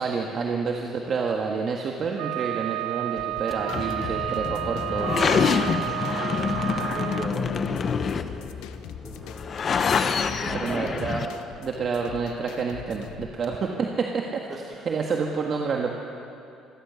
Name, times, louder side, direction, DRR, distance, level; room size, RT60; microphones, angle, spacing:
voice 1, 0.0-5.5 10.5-11.3 11.6-15.9, right 5 dB, 40° right, 1 dB, 1.6 m, -29 dB
Wind instrument woodwind instrument, 2.2-7.3, right 19 dB, 85° right, 0.4 m, -31 dB
sound 1, 3.2-13.4, left 9 dB, 85° left, 1.1 m, -44 dB
sound 2, 3.5-11.3, left 6 dB, 35° left, 1.0 m, -27 dB
voice 2, 6.8-8.7 9.0-9.5 10.4-11.0 13.6-13.7 14.5-14.9, right 1 dB, 20° right, -2 dB, 4.5 m, -38 dB
26.0 x 14.5 x 7.2 m, 2.6 s
cardioid pair, 135°, 0 cm